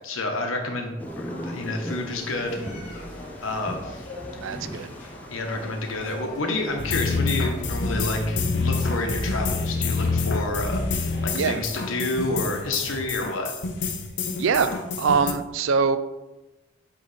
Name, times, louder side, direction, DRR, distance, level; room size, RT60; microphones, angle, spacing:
voice 1, 0.0-2.6 3.4-4.0 5.3-10.8 11.2-13.5, left 2 dB, 75° left, 3 dB, 1.0 m, -29 dB
Thunder, 1.0-6.2, equal, 10° left, 0.3 m, -38 dB
sound 1, 1.1-13.1, left 1 dB, 40° left, 1.7 m, -43 dB
voice 2, 4.4-4.9 11.3-11.6 14.4-14.7 15.0-16.0, right 5 dB, 70° right, 12 dB, 0.4 m, -23 dB
sound 2, 6.8-15.3, left 3 dB, 55° left, 0.6 m, -27 dB
8.3 x 3.3 x 4.0 m, 1.0 s
head